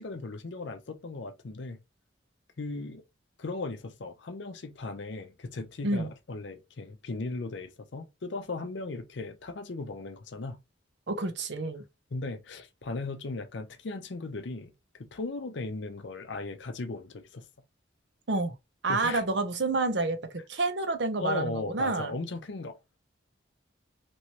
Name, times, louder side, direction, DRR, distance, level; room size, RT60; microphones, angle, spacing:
voice 1, 0.0-1.8 2.6-3.0 3.4-10.6 12.1-17.4 18.9-19.2 21.2-22.8, left 3 dB, 65° left, 0.6 m, -37 dB
voice 2, 11.1-11.8 18.3-18.5 18.8-22.1, right 3 dB, 60° right, 0.7 m, -29 dB
3.0 x 3.0 x 2.8 m
head